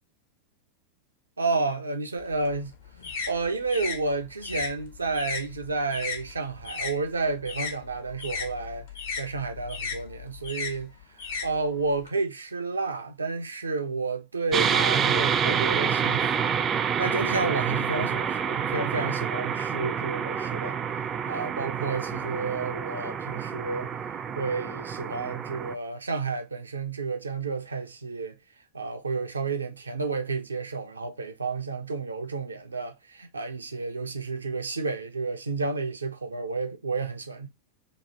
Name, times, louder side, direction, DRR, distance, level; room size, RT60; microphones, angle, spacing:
voice 1, 1.4-2.7 3.3-8.9 9.2-16.5 17.0-20.8 21.3-23.9 24.3-28.4 28.7-37.5, right 3 dB, 75° right, 0.5 m, -31 dB
sound 1, 2.2-7.0 7.3-12.1, left 5 dB, 60° left, 0.8 m, -36 dB
sound 2, 14.5-25.7, right 7 dB, 25° right, 0.3 m, -28 dB
3.0 x 2.4 x 4.2 m
figure-of-eight pair, 90°, 0 cm